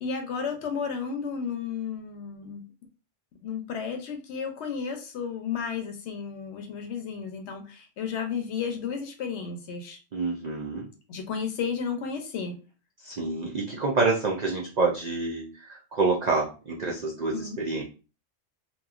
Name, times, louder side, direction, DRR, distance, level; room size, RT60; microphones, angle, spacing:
voice 1, 0.0-2.6 3.4-10.0 11.1-12.6 17.3-17.6, left 6 dB, 65° left, 5 dB, 0.8 m, -33 dB
voice 2, 10.1-10.9 13.0-17.8, right 3 dB, 80° right, -2 dB, 0.3 m, -27 dB
2.9 x 2.2 x 2.4 m, 0.34 s
omnidirectional pair, 1.3 m